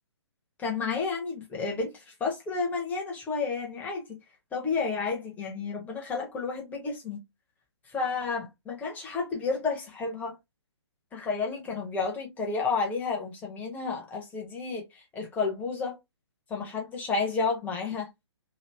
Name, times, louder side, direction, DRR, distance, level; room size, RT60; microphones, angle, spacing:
voice 1, 0.6-4.0 4.5-7.2 7.9-10.4 11.1-16.0 16.5-18.1, left 4 dB, 10° left, 1.0 m, -31 dB
3.0 x 2.7 x 3.3 m
figure-of-eight pair, 135°, 15 cm